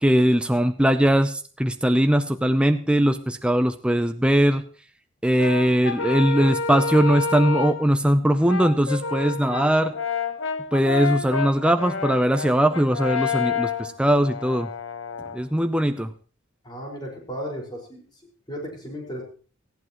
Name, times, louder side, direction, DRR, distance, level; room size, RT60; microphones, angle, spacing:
voice 1, 0.0-4.6 5.2-9.9 10.7-14.7 15.3-16.1, right 1 dB, 5° right, 8 dB, 0.5 m, -20 dB
Brass instrument, 5.4-7.9 8.5-15.4, left 5 dB, 75° left, 1.2 m, -29 dB
voice 2, 16.6-18.1 18.5-19.2, equal, 20° left, -1 dB, 5.0 m, -34 dB
18.5 x 14.5 x 3.0 m, 0.39 s
head